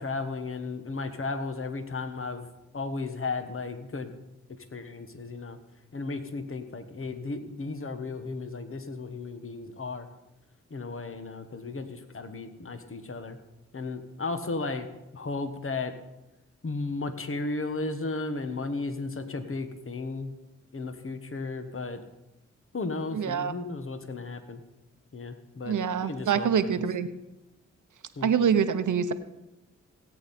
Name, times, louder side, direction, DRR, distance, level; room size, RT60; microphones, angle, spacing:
voice 1, 0.0-2.5 2.7-4.1 4.7-5.6 5.9-10.1 10.7-13.4 13.7-14.9 15.1-15.9 16.6-20.3 20.7-22.0 22.7-24.6 25.1-26.7 28.2-28.3, left 3 dB, 45° left, 8 dB, 1.4 m, -34 dB
voice 2, 23.1-23.5 25.7-27.1 28.2-29.1, right 7 dB, 70° right, 10 dB, 0.9 m, -25 dB
17.0 x 8.6 x 4.3 m, 0.97 s
cardioid pair, 45°, 31 cm